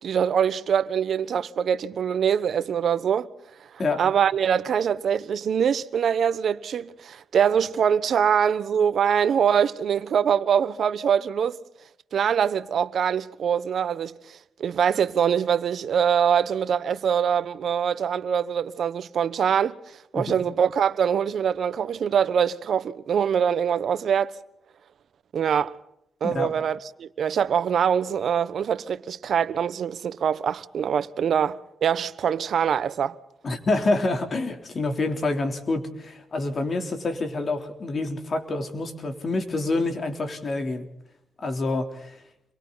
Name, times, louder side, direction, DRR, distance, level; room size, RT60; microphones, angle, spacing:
voice 1, 0.0-3.3 3.6-3.7 4.0-11.6 12.1-19.8 20.1-24.3 25.3-25.8 26.2-33.2, right 8 dB, 60° right, 1.1 m, -24 dB
voice 2, 33.4-40.9 41.4-42.1, left 2 dB, 40° left, 3.4 m, -27 dB
29.0 x 23.0 x 4.0 m
cardioid pair, 100°, 0 cm